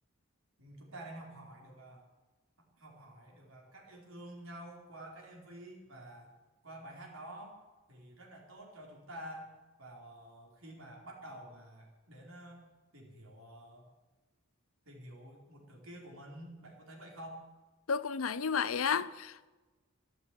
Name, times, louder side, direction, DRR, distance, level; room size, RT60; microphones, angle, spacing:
voice 1, 0.6-2.0 2.6-6.4 6.6-7.6 7.9-9.5 9.8-12.7 12.9-13.9 14.9-17.4, right 1 dB, 85° right, 4.4 m, -49 dB
voice 2, 17.9-19.5, left 6 dB, 85° left, 0.7 m, -32 dB
12.5 x 11.5 x 8.5 m
head